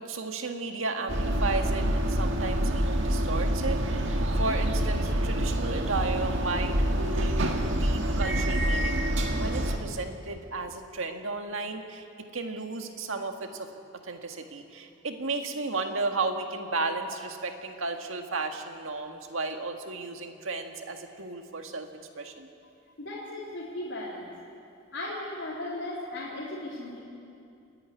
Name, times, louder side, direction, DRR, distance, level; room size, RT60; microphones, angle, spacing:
voice 1, 0.0-12.1 12.3-13.7 14.0-21.9 22.2-22.5, right 3 dB, 80° right, 4 dB, 1.8 m, -34 dB
sound 1, 1.1-9.8, right 1 dB, 65° right, 1.8 m, -27 dB
voice 2, 23.0-24.3 24.9-27.0, left 1 dB, 65° left, -8 dB, 4.0 m, -36 dB
28.0 x 11.0 x 9.8 m, 2.5 s
head